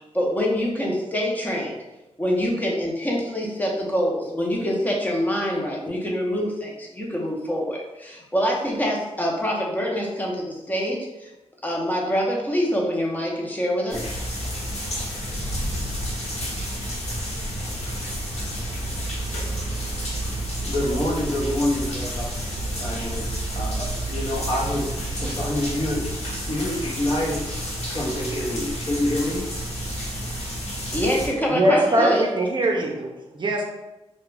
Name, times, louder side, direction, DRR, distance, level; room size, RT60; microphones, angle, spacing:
voice 1, 0.1-1.8 2.2-11.3 11.6-14.2 30.9-32.2, equal, 15° left, -2 dB, 0.6 m, -25 dB
sound 1, 13.9-31.3, right 1 dB, 80° left, 0.9 m, -30 dB
voice 2, 20.6-22.4 22.8-26.0 26.5-29.5, left 1 dB, 50° left, -3 dB, 0.7 m, -27 dB
voice 3, 31.5-33.6, right 1 dB, 45° right, 0 dB, 0.5 m, -22 dB
2.3 x 2.1 x 3.2 m, 0.98 s
cardioid pair, 90°, 11 cm